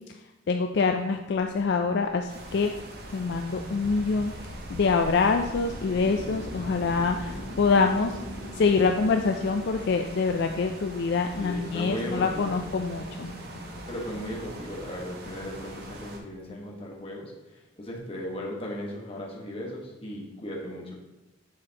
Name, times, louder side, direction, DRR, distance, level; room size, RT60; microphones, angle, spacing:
voice 1, 0.5-2.7 3.1-4.3 4.7-8.2 8.5-13.3, left 4 dB, 60° left, 5 dB, 0.4 m, -25 dB
sound 1, 1.4-14.7, left 1 dB, 80° left, 0.9 m, -42 dB
sound 2, 2.3-16.2, right 1 dB, 55° right, 1.0 m, -43 dB
voice 2, 11.4-12.6 13.9-17.3 17.8-20.9, left 1 dB, 30° left, -2 dB, 1.3 m, -36 dB
7.3 x 6.2 x 2.9 m, 1.0 s
head